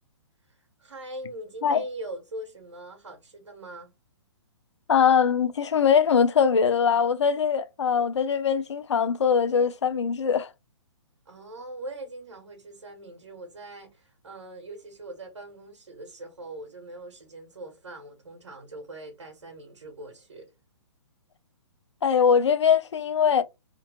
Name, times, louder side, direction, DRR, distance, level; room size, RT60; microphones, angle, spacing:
voice 1, 0.5-3.9 11.2-20.5, right 1 dB, 75° right, 1.2 m, -41 dB
voice 2, 4.9-10.5 22.0-23.4, left 7 dB, 75° left, 0.5 m, -22 dB
2.6 x 2.6 x 2.9 m
hypercardioid pair, 135°, 15 cm